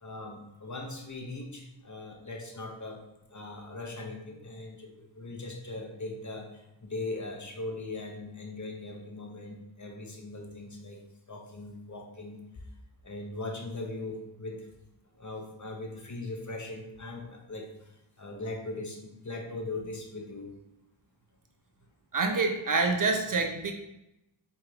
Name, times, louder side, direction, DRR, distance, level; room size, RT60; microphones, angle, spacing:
voice 1, 0.0-3.0 3.3-11.0 11.3-12.6 13.0-14.7 15.1-20.5, left 2 dB, 40° left, 1 dB, 0.9 m, -40 dB
voice 2, 22.1-23.7, right 3 dB, 45° right, 4 dB, 0.5 m, -26 dB
4.7 x 3.0 x 2.4 m, 0.88 s
cardioid pair, 40°, 48 cm